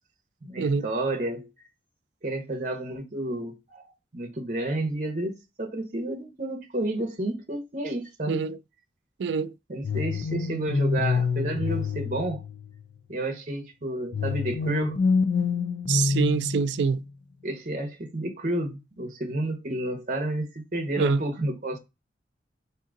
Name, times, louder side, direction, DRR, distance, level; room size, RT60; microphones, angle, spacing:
voice 1, 0.4-1.5 2.2-8.4 9.7-12.4 13.1-15.0 17.4-21.8, right 1 dB, 45° right, 0.8 m, -31 dB
voice 2, 8.3-8.6 9.2-9.5 15.9-17.0 21.0-21.2, right 5 dB, 80° right, 0.3 m, -25 dB
sound 1, 9.8-13.0 14.1-17.0, left 4 dB, 60° left, 0.3 m, -27 dB
3.7 x 2.7 x 3.7 m
head